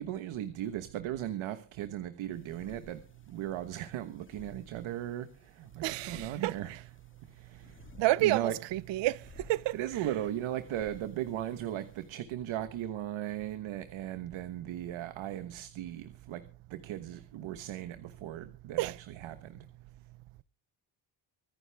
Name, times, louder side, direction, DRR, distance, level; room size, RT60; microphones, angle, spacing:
voice 1, 0.0-6.8 7.2-7.9 8.2-8.6 9.7-19.7, right 12 dB, 85° right, 1.3 m, -37 dB
sound 1, 2.3-12.1, left 4 dB, 25° left, 2.0 m, -58 dB
voice 2, 5.8-6.8 8.0-9.2 9.5-10.0 18.8-19.0, right 16 dB, 65° right, 0.6 m, -30 dB
25.0 x 9.5 x 3.4 m
cardioid pair, 125°, 46 cm